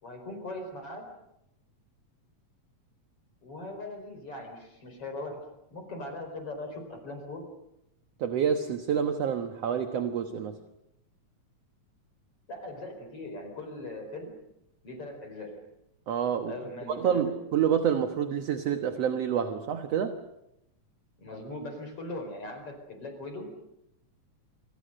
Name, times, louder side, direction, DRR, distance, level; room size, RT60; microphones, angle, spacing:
voice 1, 0.0-1.1 3.4-5.4 5.7-7.5 12.5-14.3 14.8-15.6 16.4-17.2 21.2-23.6, left 2 dB, 50° left, 5.5 m, -40 dB
voice 2, 8.2-10.6 16.1-16.6 17.0-20.2, right 8 dB, 60° right, 2.3 m, -28 dB
28.0 x 27.0 x 6.6 m
omnidirectional pair, 3.4 m